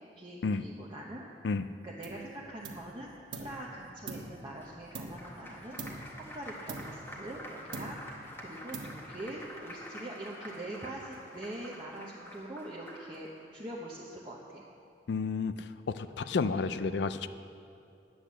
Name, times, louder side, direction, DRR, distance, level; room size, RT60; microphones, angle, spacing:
voice 1, 0.2-1.5 1.8-14.6, right 1 dB, 25° right, -4 dB, 0.9 m, -43 dB
sound 1, 2.0-2.3 2.6-3.6 4.1-5.4 5.8-6.2 6.7-7.4 7.7-8.2 8.7-9.3, right 3 dB, 80° right, 1.2 m, -43 dB
Applause, 4.6-13.3, equal, 10° left, 1.6 m, -47 dB
voice 2, 15.1-17.3, left 4 dB, 65° left, 12 dB, 0.4 m, -31 dB
10.0 x 8.7 x 7.5 m, 2.5 s
head